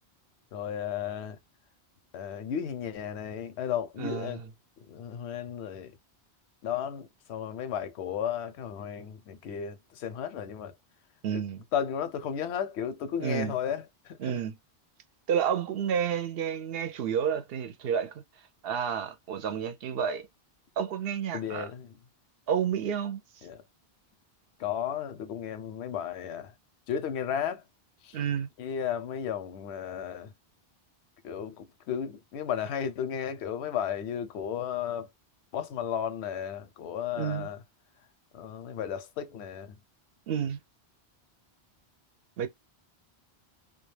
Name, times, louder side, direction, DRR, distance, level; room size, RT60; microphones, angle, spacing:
voice 1, 0.5-1.4 2.1-4.4 4.9-5.9 6.6-10.7 11.3-11.4 11.7-14.4 21.3-22.0 23.4-23.6 24.6-26.5 26.9-27.6 28.0-28.2 28.6-30.3 31.2-35.1 35.5-37.6 38.3-39.7, left 8 dB, 85° left, 0.8 m, -34 dB
voice 2, 4.0-4.4 11.2-11.6 13.2-13.5 14.2-14.5 15.3-18.2 18.6-20.3 20.8-21.7 22.5-23.2 28.1-28.5 37.2-37.5 40.3-40.6 42.4-42.5, right 8 dB, 70° right, 0.7 m, -30 dB
2.3 x 2.2 x 3.1 m
omnidirectional pair, 1.1 m